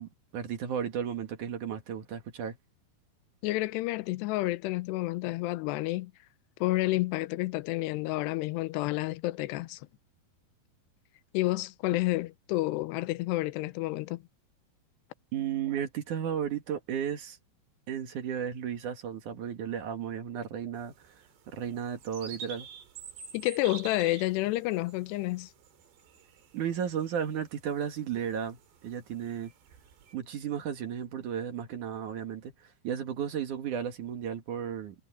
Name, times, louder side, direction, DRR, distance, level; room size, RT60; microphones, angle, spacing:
voice 1, 0.0-2.6 15.3-17.4 17.9-20.9 21.5-22.7 26.5-29.5 30.1-32.5 32.8-34.9, right 8 dB, 55° right, 2.7 m, -34 dB
voice 2, 3.4-6.1 6.6-9.9 11.3-14.2 23.3-25.5, left 18 dB, 85° left, 2.8 m, -30 dB
sound 1, 20.8-30.1, right 6 dB, 75° right, 4.6 m, -49 dB
omnidirectional pair, 4.9 m